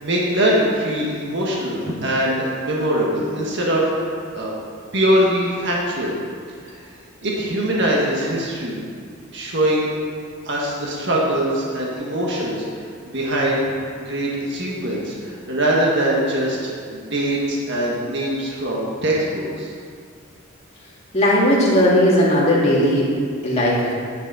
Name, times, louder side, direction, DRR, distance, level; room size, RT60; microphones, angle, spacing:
voice 1, 0.0-4.5 4.9-6.2 6.6-6.8 7.2-8.8 9.3-9.9 10.4-12.8 13.1-13.6 14.0-19.7, right 1 dB, 55° right, -4 dB, 1.7 m, -22 dB
voice 2, 21.1-23.1 23.4-23.9, equal, 30° left, -6 dB, 2.5 m, -17 dB
9.7 x 9.7 x 4.2 m, 2.1 s
head